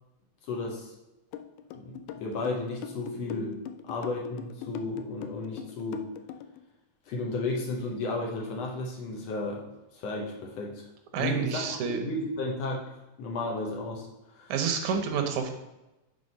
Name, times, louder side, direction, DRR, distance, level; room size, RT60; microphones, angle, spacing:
voice 1, 0.5-0.9 1.7-6.1 7.1-9.7 9.9-10.9 11.2-12.9 13.2-14.5, left 2 dB, 65° left, 0 dB, 1.9 m, -33 dB
sound 1, 1.3-6.6, left 10 dB, 90° left, 2.0 m, -41 dB
voice 2, 11.1-12.0 14.5-15.5, right 6 dB, 75° right, 5 dB, 2.2 m, -29 dB
6.2 x 4.1 x 5.3 m, 0.98 s
omnidirectional pair, 3.5 m